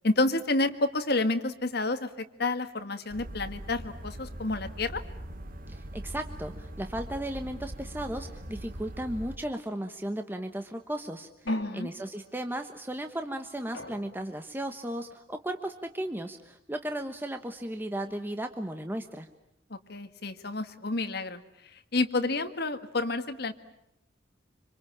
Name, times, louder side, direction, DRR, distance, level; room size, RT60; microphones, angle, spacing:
voice 1, 0.0-5.0 11.5-11.9 19.7-23.5, left 2 dB, 60° left, 8 dB, 1.8 m, -29 dB
sound 1, 3.1-9.4, right 1 dB, 50° right, 1.5 m, -41 dB
voice 2, 5.7-11.3 11.7-19.3, right 1 dB, 10° right, 6 dB, 1.2 m, -35 dB
sound 2, 11.5-12.5 13.7-14.6, left 1 dB, 85° left, 2.8 m, -44 dB
26.0 x 25.5 x 8.8 m, 0.80 s
head